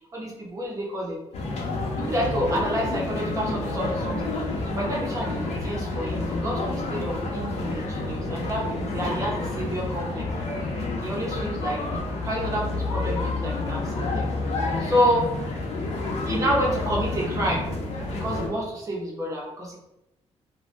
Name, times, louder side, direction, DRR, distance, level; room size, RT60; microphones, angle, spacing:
voice 1, 0.1-1.2 2.0-4.3 4.7-10.3 11.0-14.3 14.8-15.3 16.3-17.6 18.1-19.8, equal, 30° right, -3 dB, 0.7 m, -29 dB
sound 1, 1.3-18.5, left 2 dB, 75° left, 0.6 m, -29 dB
2.6 x 2.2 x 3.2 m, 0.89 s
cardioid pair, 170°, 11 cm